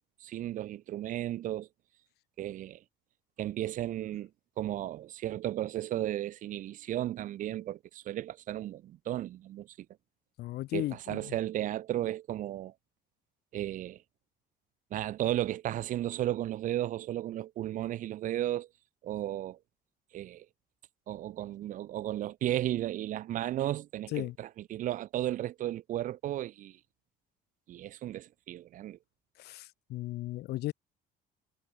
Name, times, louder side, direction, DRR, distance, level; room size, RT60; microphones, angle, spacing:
voice 1, 0.2-1.7 2.4-2.8 3.4-4.3 4.6-9.7 10.7-12.7 13.5-14.0 14.9-18.7 19.0-19.6 20.1-20.5 21.1-26.8 27.7-29.0, right 13 dB, 50° right, 0.4 m, -34 dB
voice 2, 10.4-11.3 24.1-24.3 29.4-30.7, left 16 dB, 75° left, 1.0 m, -36 dB
cardioid pair, 110°, 17 cm